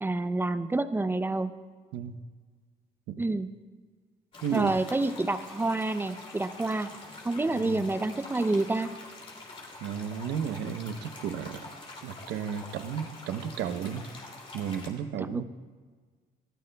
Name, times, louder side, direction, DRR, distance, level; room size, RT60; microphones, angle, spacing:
voice 1, 0.0-1.5 3.2-3.5 4.5-6.9 7.2-9.0 15.2-15.4, right 2 dB, 15° right, 12 dB, 0.5 m, -28 dB
sound 1, 4.3-14.9, left 2 dB, 35° left, 2.4 m, -46 dB
voice 2, 4.4-4.7 7.5-7.9 9.8-11.7 12.0-14.0 14.5-15.4, right 8 dB, 80° right, 10 dB, 0.8 m, -33 dB
19.5 x 13.5 x 2.2 m, 1.5 s
cardioid pair, 110°, 17 cm